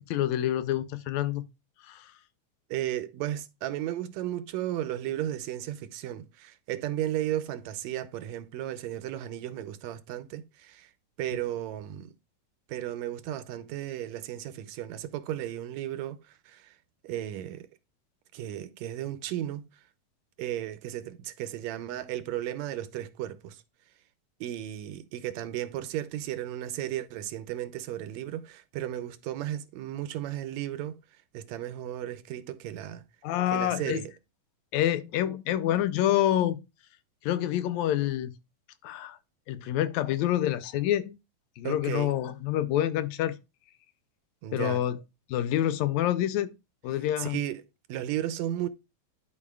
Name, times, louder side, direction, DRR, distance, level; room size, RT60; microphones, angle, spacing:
voice 1, 0.1-1.4 1.9-2.1 33.2-34.0 34.7-36.6 37.2-38.3 38.8-39.2 39.5-41.2 41.6-43.4 44.5-45.0 45.3-46.5 46.8-47.4, left 12 dB, 80° left, 1.9 m, -27 dB
voice 2, 2.7-10.9 11.2-12.1 12.7-16.8 17.0-17.7 18.3-19.7 20.4-23.6 24.4-31.0 31.3-33.0 33.5-34.1 41.6-42.1 44.4-44.9 47.2-47.6 47.9-48.7, right 12 dB, 80° right, 1.7 m, -34 dB
12.0 x 4.8 x 2.2 m
omnidirectional pair, 3.3 m